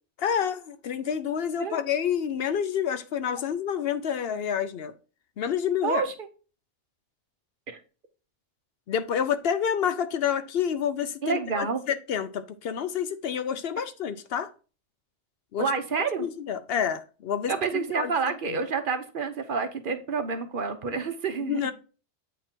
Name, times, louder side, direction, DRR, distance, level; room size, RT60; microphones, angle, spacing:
voice 1, 0.2-4.9 5.4-6.0 8.9-14.5 15.5-15.6 16.2-18.1 18.5-18.6 21.4-21.7, left 8 dB, 65° left, 0.8 m, -28 dB
voice 2, 5.8-6.1 7.7-7.8 11.2-11.8 15.6-16.3 17.5-21.7, right 5 dB, 50° right, 1.0 m, -28 dB
8.1 x 3.7 x 4.4 m
omnidirectional pair, 1.2 m